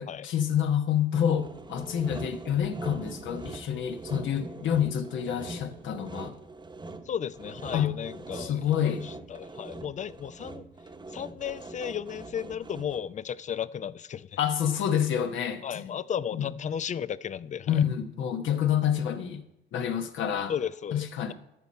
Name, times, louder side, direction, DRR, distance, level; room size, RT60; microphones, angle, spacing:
voice 1, 0.0-6.3 7.7-8.0 8.3-9.1 14.4-16.0 16.3-16.4 17.7-19.4 19.7-20.5 20.9-21.3, left 9 dB, 75° left, 1.1 m, -28 dB
Sawing, 1.1-13.2, right 2 dB, 20° right, 0.9 m, -42 dB
voice 2, 7.1-10.7 11.1-14.3 15.6-17.8 20.5-21.3, left 8 dB, 40° left, 0.4 m, -34 dB
13.5 x 5.5 x 4.3 m
cardioid pair, 90°, 20 cm